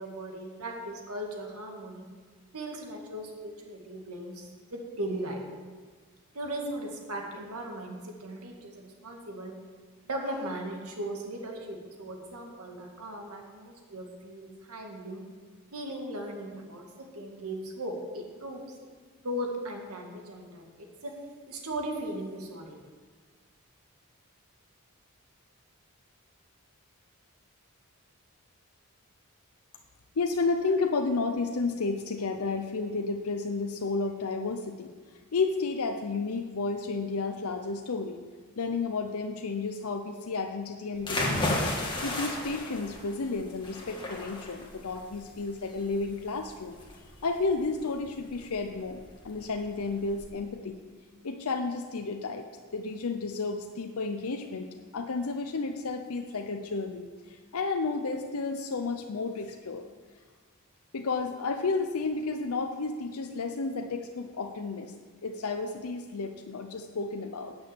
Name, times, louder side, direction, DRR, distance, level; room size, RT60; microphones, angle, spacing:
voice 1, 0.0-2.1 2.5-5.4 6.3-9.5 10.0-15.2 15.7-18.6 19.2-20.6 21.0-21.1 21.5-22.8 30.7-30.8, right 1 dB, 85° right, 1 dB, 1.9 m, -37 dB
voice 2, 30.2-38.2 38.6-41.6 42.0-50.8 51.2-54.7 54.9-59.9 60.9-64.9 65.2-67.6, left 3 dB, 75° left, 5 dB, 0.6 m, -32 dB
sound 1, 41.0-50.3, left 1 dB, 20° left, 1.6 m, -35 dB
9.4 x 6.2 x 8.4 m, 1.5 s
head